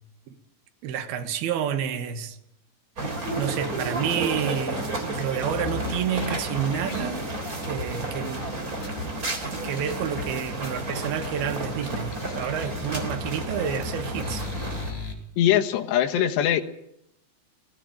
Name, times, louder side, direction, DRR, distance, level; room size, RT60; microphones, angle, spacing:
voice 1, 0.8-2.4 3.0-7.3 7.7-8.5 9.4-14.5, right 8 dB, 65° right, 3.3 m, -29 dB
sound 1, 3.0-14.9, right 2 dB, 20° right, 3.7 m, -32 dB
sound 2, 5.1-15.0, left 3 dB, 15° left, 4.7 m, -46 dB
sound 3, 5.5-9.1 9.4-9.5 9.7-10.3 10.6-11.4 11.8-11.9 12.1-15.1, left 4 dB, 50° left, 5.8 m, -37 dB
voice 2, 15.4-16.6, left 11 dB, 80° left, 3.6 m, -21 dB
19.5 x 18.0 x 8.9 m
omnidirectional pair, 4.9 m